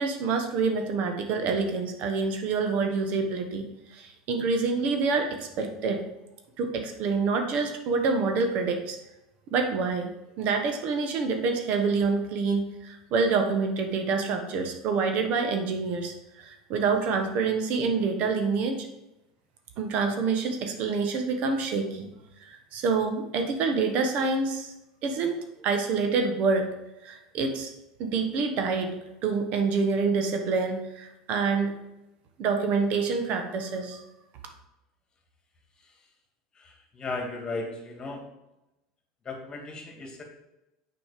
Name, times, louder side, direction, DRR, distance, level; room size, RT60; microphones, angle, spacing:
voice 1, 0.0-6.0 6.6-9.0 9.5-10.1 10.4-18.9 19.8-22.1 22.4-24.7 25.0-25.4 25.6-26.7 27.0-27.7 28.0-28.9 29.2-31.7 32.4-34.0, right 4 dB, 55° right, 5 dB, 1.2 m, -27 dB
voice 2, 36.5-38.3 39.2-40.2, left 3 dB, 30° left, 3 dB, 2.1 m, -36 dB
6.3 x 5.1 x 5.0 m, 0.93 s
hypercardioid pair, 90°, 3 cm